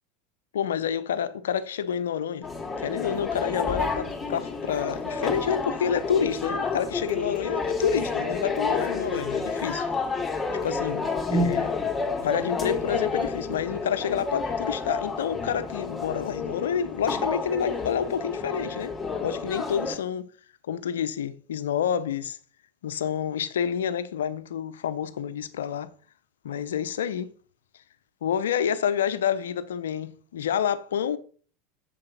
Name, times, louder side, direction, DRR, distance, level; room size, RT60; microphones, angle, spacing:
voice 1, 0.5-2.5 2.8-9.9 10.6-11.7 12.2-18.9 19.2-20.3 20.7-22.4 22.8-25.9 26.4-27.3 28.2-31.2, left 8 dB, 75° left, 0.8 m, -28 dB
sound 1, 2.4-20.0, left 4 dB, 15° left, 3.1 m, -30 dB
7.7 x 6.8 x 6.0 m
figure-of-eight pair, 80°, 0 cm